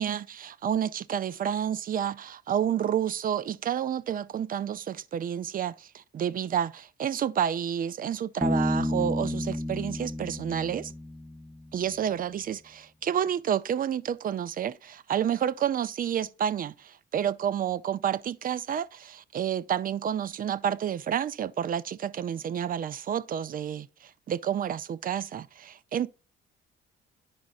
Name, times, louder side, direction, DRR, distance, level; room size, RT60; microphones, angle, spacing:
voice 1, 0.0-10.9 11.7-16.7 17.1-26.1, right 9 dB, 45° right, 0.5 m, -30 dB
Bass guitar, 8.4-11.9, left 1 dB, 5° left, 0.6 m, -31 dB
9.8 x 5.1 x 2.4 m
cardioid pair, 90°, 20 cm